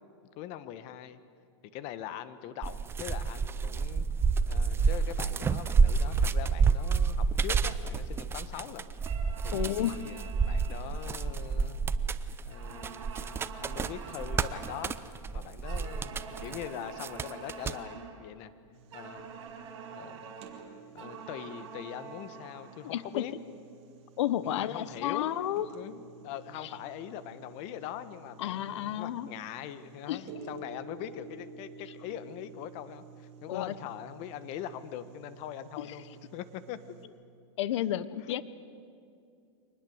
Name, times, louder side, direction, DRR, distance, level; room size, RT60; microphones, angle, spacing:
voice 1, 0.4-1.2 1.7-4.1 4.5-8.8 9.4-11.8 12.4-15.0 15.3-18.5 18.9-19.3 19.9-20.3 20.9-23.3 24.4-25.3 25.7-36.1 36.3-36.8 38.3-38.4, left 11 dB, 45° left, 13 dB, 1.4 m, -42 dB
sound 1, 2.6-16.7 17.0-17.7, right 5 dB, 15° right, 0.6 m, -29 dB
sound 2, 9.0-12.1 12.5-15.1 15.6-18.3 18.9-23.1, right 6 dB, 70° right, 4.3 m, -47 dB
voice 2, 9.5-10.0 22.8-23.2 24.2-25.7 26.6-26.7 28.4-29.3 30.1-30.4 33.5-33.7 35.8-35.9 37.6-38.4, left 12 dB, 70° left, 16 dB, 0.9 m, -31 dB
sound 3, 18.7-37.1, right 5 dB, 40° right, 3.1 m, -52 dB
24.5 x 20.0 x 8.0 m, 2.4 s
supercardioid pair, 135°, 15 cm